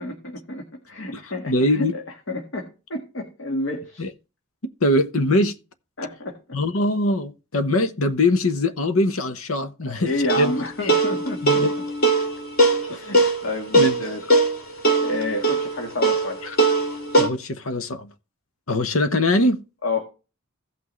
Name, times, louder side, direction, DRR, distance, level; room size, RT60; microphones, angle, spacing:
voice 1, 0.0-2.0 2.3-4.0 6.0-6.4 9.8-11.6 12.9-14.2 15.0-16.4 19.8-20.0, left 2 dB, 65° left, 1.7 m, -29 dB
voice 2, 1.1-1.9 4.0-4.1 4.8-5.6 6.5-10.1 10.4-10.5 10.8-10.9 11.4-11.7 12.9-13.3 13.7-14.0 16.4-16.6 17.2-18.1 18.7-19.6, left 1 dB, 90° left, 1.0 m, -22 dB
sound 1, 10.3-17.3, right 2 dB, 45° left, 2.0 m, -20 dB
16.0 x 6.0 x 3.2 m
head